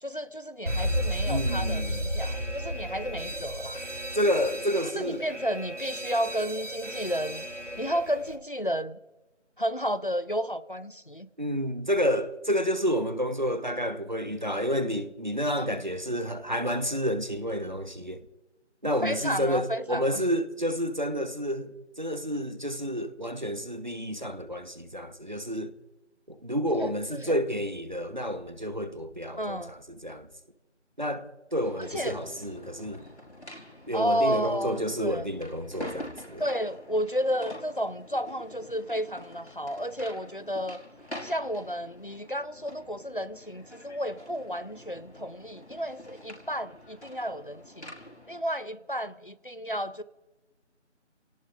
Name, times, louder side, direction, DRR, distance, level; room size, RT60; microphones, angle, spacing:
voice 1, 0.0-3.8 4.9-7.4 7.8-9.0 9.6-11.3 15.5-15.8 19.0-20.3 26.7-27.4 29.4-29.7 31.8-32.1 33.9-35.3 36.4-40.8 41.2-47.9 48.3-50.0, equal, 45° left, 0.7 m, -32 dB
Alarm, 0.7-8.4, equal, 85° right, 3.1 m, -33 dB
voice 2, 1.3-2.0 4.1-5.3 11.4-18.2 18.8-25.7 26.3-30.3 31.0-33.0 33.9-36.4, equal, 40° right, 1.1 m, -30 dB
sound 1, 31.6-48.4, left 1 dB, 70° left, 5.1 m, -46 dB
30.0 x 18.0 x 2.6 m
figure-of-eight pair, 175°, 36 cm